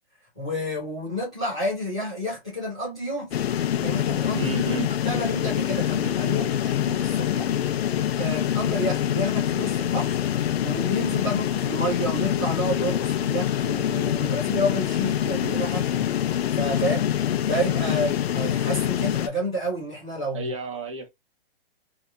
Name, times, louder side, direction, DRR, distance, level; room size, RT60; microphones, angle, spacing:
voice 1, 0.3-4.4 5.0-7.7 7.9-10.2 10.6-17.1 17.4-20.5, equal, 5° left, 0.4 m, -30 dB
sound 1, 3.3-19.3, left 10 dB, 90° left, 0.5 m, -25 dB
voice 2, 4.3-4.9 6.4-6.6 17.8-18.0 20.3-21.1, right 4 dB, 30° right, 0.8 m, -32 dB
2.8 x 2.4 x 2.2 m
hypercardioid pair, 180°, 30 cm